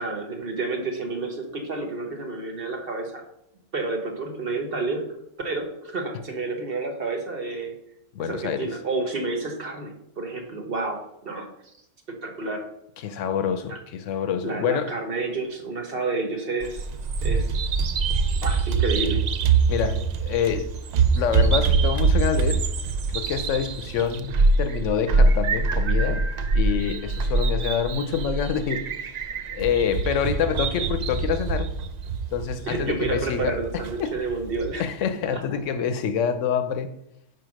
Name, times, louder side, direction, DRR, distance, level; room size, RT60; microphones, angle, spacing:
voice 1, 0.0-3.2 3.7-5.1 5.4-7.8 8.2-11.5 12.2-12.7 13.7-13.8 14.4-16.9 17.2-17.5 18.4-19.3 32.6-34.9 35.3-35.4, right 3 dB, 50° right, 1.2 m, -30 dB
voice 2, 8.1-8.7 13.0-14.9 19.7-20.7 21.1-22.7 23.1-26.2 26.5-28.9 29.5-31.7 32.3-33.6 34.0-34.2 34.8-36.9, left 7 dB, 75° left, 1.0 m, -26 dB
Bird vocalization bird call bird song, 16.6-34.7, right 4 dB, 90° right, 0.3 m, -24 dB
4.8 x 4.8 x 6.1 m
omnidirectional pair, 1.3 m